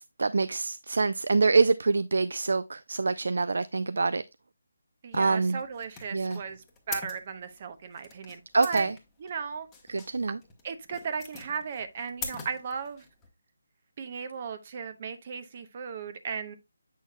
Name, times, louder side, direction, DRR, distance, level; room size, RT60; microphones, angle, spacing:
voice 1, 0.0-4.2 5.1-5.6 6.1-6.4 8.5-8.9 9.9-10.4, right 3 dB, 70° right, 0.4 m, -25 dB
voice 2, 5.0-8.9 9.2-9.7 10.6-13.0 14.0-16.6, right 6 dB, 35° right, 0.8 m, -36 dB
sound 1, 5.1-13.3, left 5 dB, 10° left, 1.1 m, -43 dB
8.2 x 6.2 x 2.3 m
figure-of-eight pair, 165°, 0 cm